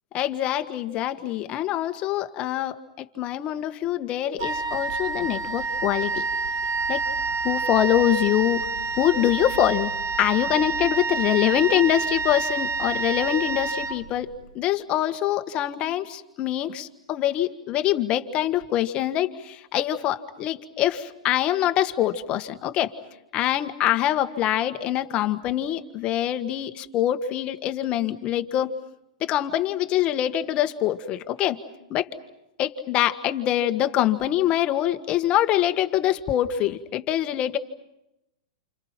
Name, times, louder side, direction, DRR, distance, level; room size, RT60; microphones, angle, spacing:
voice 1, 0.1-6.2 6.9-7.0 7.4-8.6 9.0-9.9 10.2-14.3 14.5-23.0 23.3-28.7 29.2-31.6 31.9-32.1 32.6-37.6, left 12 dB, 35° left, 9 dB, 1.5 m, -24 dB
Wind instrument woodwind instrument, 4.4-14.5, right 4 dB, 55° right, 2.2 m, -28 dB
29.5 x 28.5 x 5.9 m, 0.88 s
hypercardioid pair, 125°, 3 cm